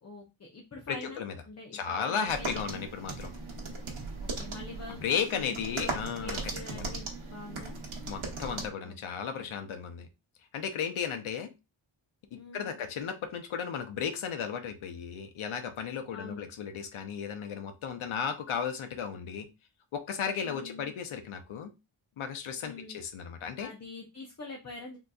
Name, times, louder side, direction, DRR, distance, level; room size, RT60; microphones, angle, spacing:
voice 1, 0.0-2.6 4.2-7.8 8.8-9.0 9.3-9.5 12.3-12.8 16.1-16.5 20.4-20.9 22.6-23.0 23.6-25.0, left 3 dB, 35° left, 1 dB, 0.6 m, -45 dB
voice 2, 0.9-1.3 1.7-3.3 4.9-6.4 6.7-6.9 8.1-10.1 10.5-11.5 12.3-19.5 19.9-21.7 22.2-23.7, left 7 dB, 75° left, 6 dB, 0.7 m, -35 dB
sound 1, 2.3-8.7, right 3 dB, 75° right, 1.0 m, -38 dB
3.8 x 2.7 x 2.3 m, 0.26 s
wide cardioid pair, 145°, 49 cm